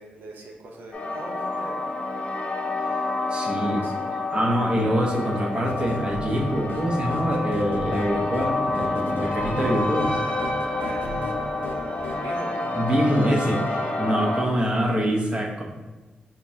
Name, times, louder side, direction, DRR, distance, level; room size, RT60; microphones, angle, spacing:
voice 1, 0.0-1.8 3.3-3.9 10.7-12.6, right 2 dB, 80° right, 0 dB, 0.6 m, -42 dB
sound 1, 0.9-14.4, left 2 dB, 45° left, 0.8 m, -28 dB
voice 2, 3.3-3.8 4.3-10.2 12.7-15.6, equal, 30° right, 0 dB, 0.8 m, -24 dB
sound 2, 5.7-12.2, left 2 dB, 85° left, 0.5 m, -36 dB
5.1 x 2.9 x 2.7 m, 1.3 s
wide cardioid pair, 125°, 3 cm